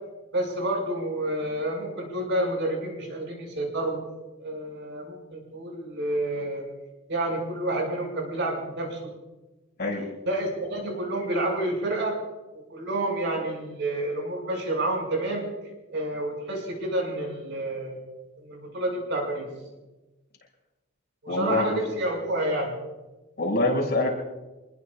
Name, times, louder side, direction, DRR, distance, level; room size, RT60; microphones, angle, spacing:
voice 1, 0.3-4.0 4.4-6.6 7.1-9.1 10.3-12.2 12.5-15.4 15.9-18.0 18.4-19.5 21.2-22.8, right 1 dB, 60° right, 1 dB, 5.8 m, -29 dB
voice 2, 21.3-21.8 23.4-24.1, left 2 dB, 55° left, -1 dB, 6.0 m, -25 dB
26.5 x 21.0 x 2.4 m, 1.1 s
head